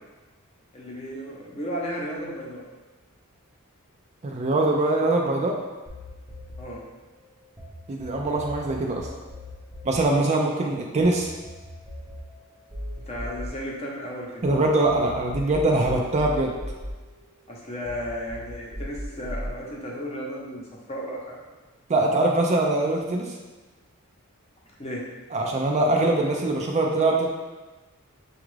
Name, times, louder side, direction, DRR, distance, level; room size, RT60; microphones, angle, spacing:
voice 1, 0.7-2.6 6.6-6.8 13.0-14.4 17.5-21.4 24.8-25.0, equal, 30° left, -3 dB, 0.8 m, -34 dB
voice 2, 4.2-5.6 7.9-9.1 9.8-11.3 14.4-16.5 21.9-23.3 25.3-27.3, right 2 dB, 30° right, 0 dB, 0.4 m, -23 dB
sound 1, 5.9-7.7 8.0-14.5 14.9-17.5 17.9-19.5, equal, 5° right, 0.7 m, -38 dB
6.2 x 2.4 x 3.2 m, 1.2 s
head